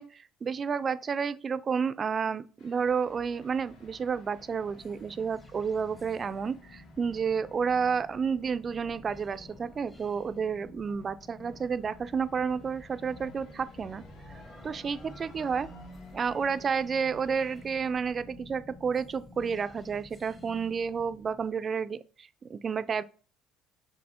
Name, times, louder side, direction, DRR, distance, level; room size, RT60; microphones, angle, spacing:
voice 1, 0.0-14.0 14.6-15.7 16.1-23.0, right 6 dB, 35° right, 0.3 m, -31 dB
sound 1, 2.6-17.7, equal, 70° left, 1.0 m, -56 dB
sound 2, 2.6-21.5, left 2 dB, 15° left, 0.7 m, -51 dB
5.4 x 3.2 x 2.8 m
supercardioid pair, 95°, 0 cm